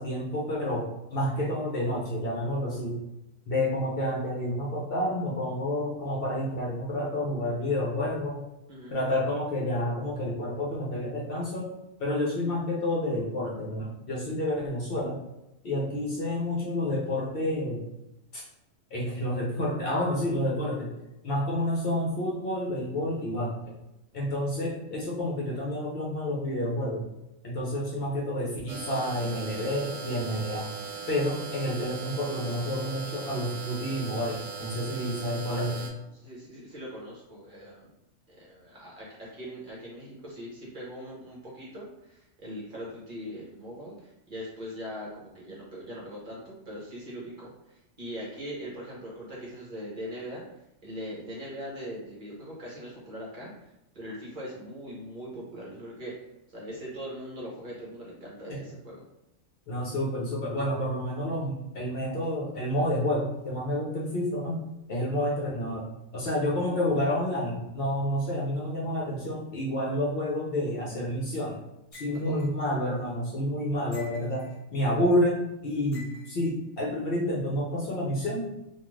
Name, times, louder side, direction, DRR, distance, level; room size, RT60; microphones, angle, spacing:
voice 1, 0.0-3.0 3.5-8.4 8.9-11.7 12.0-15.2 15.6-17.8 18.3-18.4 18.9-20.9 21.2-23.5 24.1-27.1 27.4-30.7 31.1-35.9 58.5-58.6 59.7-64.6 64.9-65.9 66.1-71.6 71.9-78.5, left 1 dB, 60° left, -4 dB, 0.7 m, -29 dB
sound 1, 28.7-35.9, right 5 dB, 75° right, 0.9 m, -39 dB
voice 2, 35.5-35.9 36.2-37.9 38.3-50.4 50.8-56.1 56.5-59.0 72.1-72.5, equal, 50° right, -5 dB, 0.8 m, -41 dB
sound 2, 71.9-72.5 73.9-74.6 75.9-76.5, left 1 dB, 30° left, 1.0 m, -48 dB
2.4 x 2.4 x 3.1 m, 0.89 s
omnidirectional pair, 1.3 m